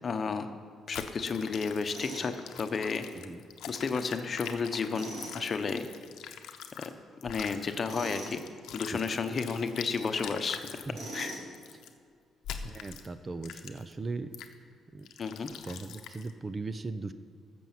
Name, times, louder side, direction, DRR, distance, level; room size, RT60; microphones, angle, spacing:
voice 1, 0.0-0.5 0.9-3.0 3.7-5.8 6.8-6.9 7.2-8.4 8.7-10.8 11.1-11.4 15.2-15.5, left 5 dB, 45° left, 8 dB, 0.9 m, -32 dB
sound 1, 0.9-6.9 7.2-10.9 11.5-11.9 12.4-13.1 13.4-13.9 14.3-14.5 15.1-16.3, left 8 dB, 85° left, 0.8 m, -44 dB
Tools, 1.9-2.3 4.9-5.4 7.9-8.4 10.9-11.5, right 1 dB, 70° right, 3.2 m, -41 dB
voice 2, 12.6-14.3 14.9-15.1 15.6-17.1, right 3 dB, 30° right, 11 dB, 0.6 m, -38 dB
14.0 x 6.2 x 7.3 m, 2.1 s
cardioid pair, 90°, 0 cm